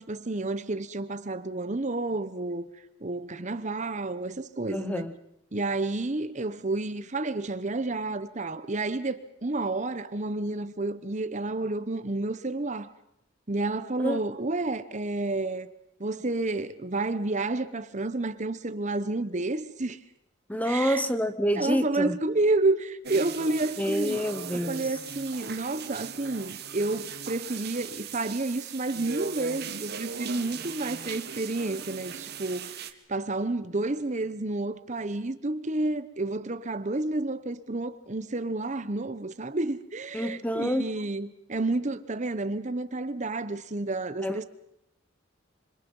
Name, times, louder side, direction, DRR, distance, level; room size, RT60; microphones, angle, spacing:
voice 1, 0.0-2.7 3.0-5.1 5.5-12.9 13.5-15.7 16.0-20.0 20.6-21.0 21.6-24.2 24.5-32.8 33.1-44.4, right 2 dB, 35° right, 1.0 m, -30 dB
voice 2, 4.7-5.1 14.0-14.2 20.5-22.2 23.8-24.9 40.1-40.9 44.2-44.4, equal, 5° left, 0.8 m, -28 dB
sound 1, 23.0-32.9, right 6 dB, 50° right, 1.5 m, -38 dB
26.5 x 26.0 x 5.5 m
head